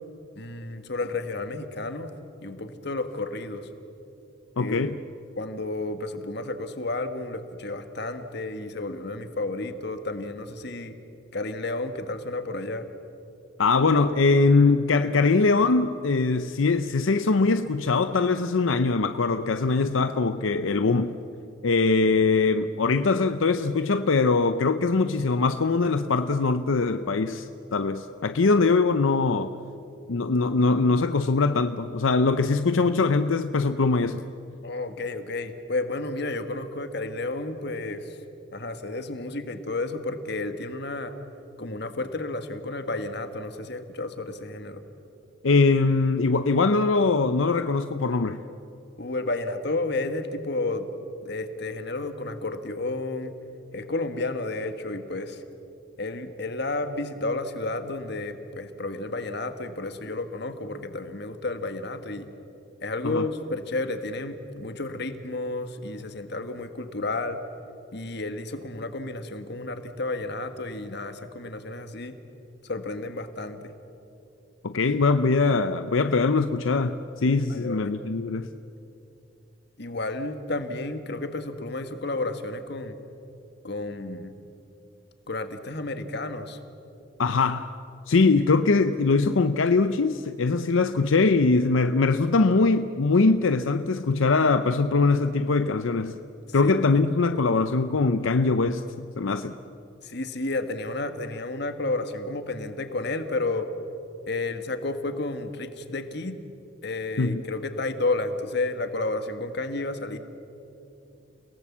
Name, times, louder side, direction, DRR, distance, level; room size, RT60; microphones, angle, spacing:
voice 1, 0.3-2.1 2.4-3.7 4.6-4.9 5.4-11.0 11.3-12.8 34.6-38.2 38.5-41.1 41.6-44.8 49.0-50.9 51.2-53.3 53.7-55.4 56.0-62.3 62.8-67.4 67.9-72.1 72.6-73.6 77.5-77.9 79.8-83.0 83.6-84.4 85.3-86.6 96.6-97.0 100.0-103.7 104.3-106.4 106.8-110.2, left 2 dB, 60° left, 1.6 m, -31 dB
voice 2, 4.6-5.0 13.6-21.1 21.6-29.5 30.1-34.2 45.4-48.4 63.0-63.3 74.6-78.5 87.2-87.7 88.1-96.2 96.5-98.8 99.2-99.6 107.2-107.4, left 3 dB, 85° left, 0.7 m, -22 dB
30.0 x 18.0 x 7.4 m
head